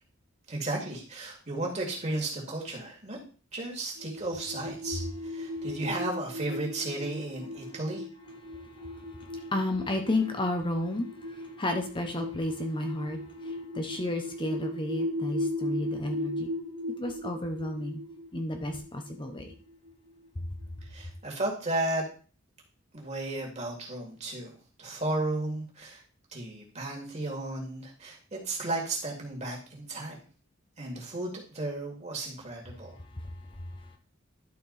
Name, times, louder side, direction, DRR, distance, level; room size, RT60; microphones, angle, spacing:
voice 1, 0.5-3.2 3.5-8.0 20.8-22.0 22.9-26.0 26.3-30.2 30.8-33.0, right 2 dB, 35° right, 2.5 m, -34 dB
sound 1, 4.0-20.3, left 1 dB, 80° right, 0.8 m, -37 dB
voice 2, 8.4-16.5 17.0-18.0 18.3-19.5 33.0-34.0, left 1 dB, 25° left, 0.8 m, -33 dB
11.5 x 4.4 x 4.1 m
head